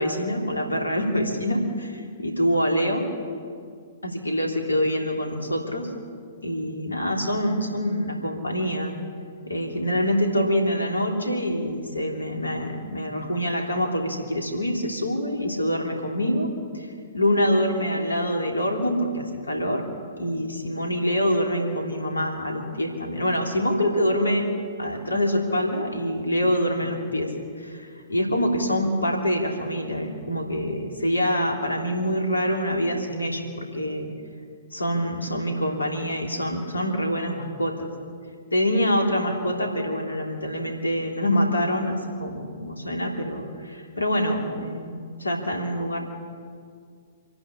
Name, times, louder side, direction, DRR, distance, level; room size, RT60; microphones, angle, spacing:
voice 1, 0.0-3.1 4.0-5.9 6.4-9.0 9.5-16.5 16.7-19.8 20.2-24.5 24.8-34.1 34.7-37.9 38.5-46.0, equal, 80° left, 1 dB, 3.4 m, -25 dB
26.5 x 11.5 x 8.7 m, 2.2 s
figure-of-eight pair, 115°, 0 cm